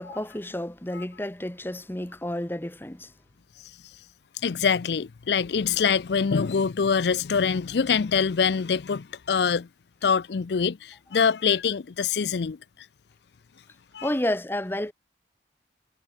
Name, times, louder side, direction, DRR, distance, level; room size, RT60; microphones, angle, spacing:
voice 1, 0.0-3.1 14.0-14.9, left 1 dB, 10° left, 0.9 m, -30 dB
voice 2, 4.4-9.7 10.0-12.6 13.9-14.1, left 6 dB, 75° left, 0.5 m, -24 dB
head